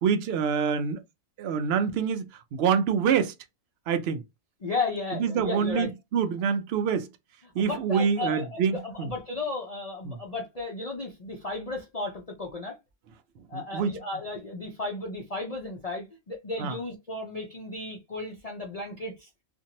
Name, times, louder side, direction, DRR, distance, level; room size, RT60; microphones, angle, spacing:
voice 1, 0.0-1.0 1.4-3.3 3.9-4.2 5.1-7.1 7.5-9.1 10.0-10.2 13.5-14.0 16.6-16.8, right 7 dB, 65° right, 0.6 m, -26 dB
voice 2, 4.6-5.9 7.6-12.8 13.5-19.3, left 3 dB, 50° left, 0.4 m, -34 dB
2.7 x 2.5 x 2.8 m
omnidirectional pair, 1.4 m